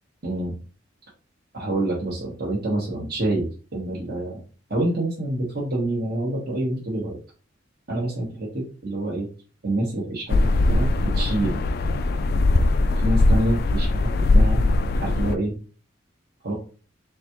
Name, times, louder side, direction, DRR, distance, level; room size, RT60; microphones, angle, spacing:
voice 1, 0.2-0.6 1.5-4.4 4.7-7.2 7.9-9.3 9.6-11.6 12.9-14.6 14.9-15.5 16.4-16.5, right 1 dB, 55° right, -5 dB, 1.2 m, -27 dB
sound 1, 10.3-15.3, left 2 dB, 55° left, 0.3 m, -20 dB
4.1 x 3.4 x 3.0 m, 0.36 s
head